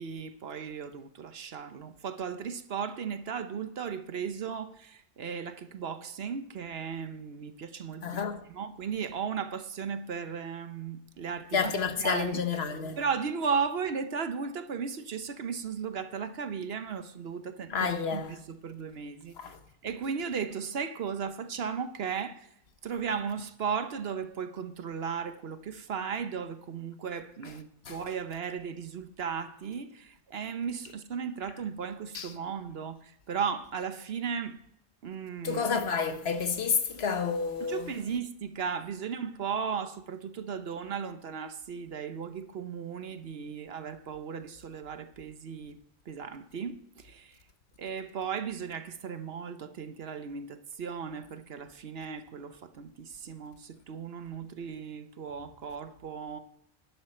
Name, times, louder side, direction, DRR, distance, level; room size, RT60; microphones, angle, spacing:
voice 1, 0.0-8.2 8.5-12.4 13.0-19.3 19.8-22.4 22.8-34.6 35.0-35.7 37.6-45.8 46.1-47.4 47.8-56.4, right 6 dB, 65° right, 1.0 m, -36 dB
voice 2, 8.0-8.4 11.5-13.0 17.7-18.4 19.4-19.6 27.9-28.0 32.1-32.3 35.4-37.9, left 5 dB, 65° left, 1.3 m, -30 dB
11.5 x 11.0 x 4.3 m
omnidirectional pair, 1.2 m